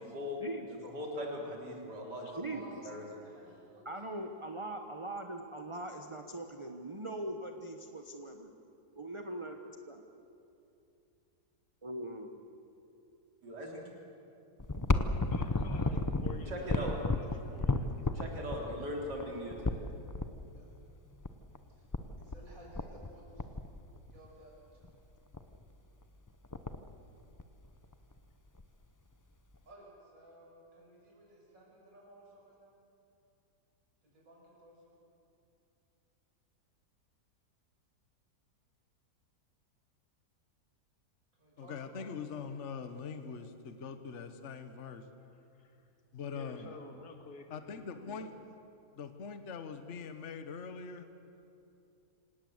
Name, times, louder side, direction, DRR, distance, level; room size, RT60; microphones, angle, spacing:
voice 1, 0.0-0.4 0.8-2.3 2.8-3.0 13.4-13.8 16.5-16.9 18.1-19.9, equal, 80° right, -1 dB, 4.2 m, -39 dB
voice 2, 2.3-4.0 18.6-19.2 20.5-20.7 21.8-21.9 22.2-23.4 24.0-24.9 29.6-32.7 34.0-35.0 41.4-42.1, right 1 dB, 55° right, -4 dB, 6.5 m, -55 dB
voice 3, 3.8-8.5 9.0-10.0 11.8-12.5, right 1 dB, 20° right, 4 dB, 1.0 m, -41 dB
sound 1, 14.6-20.3 21.2-21.3 21.6-21.7 21.9-22.4 22.7-23.1 23.4-24.3 24.8-24.9 25.3-25.6 26.0-26.1 26.3-26.9 27.4-28.2 28.6-28.7 29.5-29.6, left 2 dB, 25° left, 0.4 m, -33 dB
voice 4, 15.3-18.2 45.5-45.8 46.3-47.5, left 4 dB, 70° left, 4 dB, 2.3 m, -50 dB
voice 5, 41.6-45.1 46.1-46.7 47.5-48.6 48.9-51.1, left 5 dB, 50° left, 9 dB, 1.4 m, -43 dB
26.5 x 18.0 x 8.0 m, 2.7 s
omnidirectional pair, 1.7 m